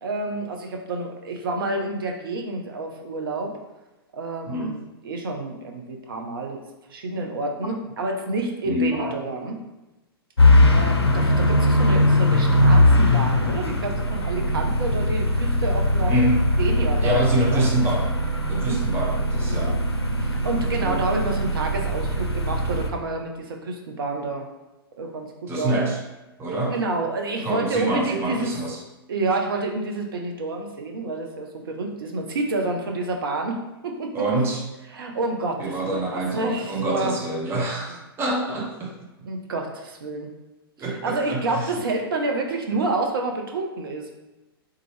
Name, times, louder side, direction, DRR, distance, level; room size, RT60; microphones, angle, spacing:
voice 1, 0.0-3.5 4.1-4.7 5.0-6.6 6.9-9.6 10.7-16.1 16.6-17.2 17.5-17.7 18.5-18.8 19.5-19.7 20.2-24.5 25.0-25.7 26.7-28.5 29.1-33.6 33.8-34.1 34.9-37.1 39.3-40.3 40.8-44.1, right 2 dB, 65° right, 2 dB, 0.6 m, -29 dB
voice 2, 4.5-4.8 8.6-9.2 16.1-16.5 17.0-18.1 18.4-19.8 20.8-21.0 25.5-26.0 26.4-26.8 27.4-28.8 34.1-34.7 35.6-38.9 40.8-41.7, right 1 dB, 20° right, -1 dB, 0.7 m, -26 dB
sound 1, 10.4-22.9, left 1 dB, 85° left, 0.4 m, -20 dB
3.7 x 2.8 x 3.1 m, 1.0 s
figure-of-eight pair, 105°, 13 cm